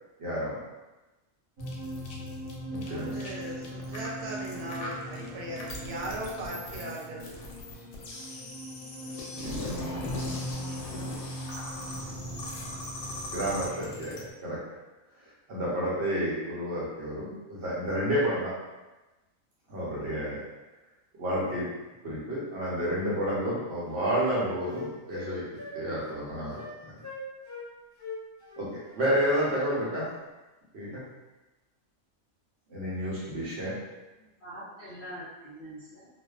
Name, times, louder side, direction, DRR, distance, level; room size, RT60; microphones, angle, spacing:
voice 1, 0.2-0.6 2.7-3.3 9.4-9.7 13.3-14.6 15.5-18.5 19.7-20.4 21.2-21.7 22.0-25.4 25.7-26.9 28.6-28.7 29.0-30.1 30.7-31.0 32.7-33.7, equal, 55° right, -7 dB, 1.0 m, -30 dB
sound 1, 1.6-14.2, left 2 dB, 85° left, 1.0 m, -41 dB
sound 2, 1.6-14.3, equal, 25° right, 1.0 m, -40 dB
voice 2, 2.9-7.3 9.0-9.6, right 1 dB, 85° right, -3 dB, 1.1 m, -39 dB
Wind instrument woodwind instrument, 23.1-23.2 23.5-25.3 25.6-25.8 26.0-26.2 26.5-26.7 27.0-27.7 28.0-29.9, left 3 dB, 20° left, 1.3 m, -42 dB
voice 3, 33.3-33.7 34.2-36.1, equal, 60° left, -10 dB, 0.5 m, -45 dB
2.5 x 2.2 x 2.3 m, 1.1 s
omnidirectional pair, 1.4 m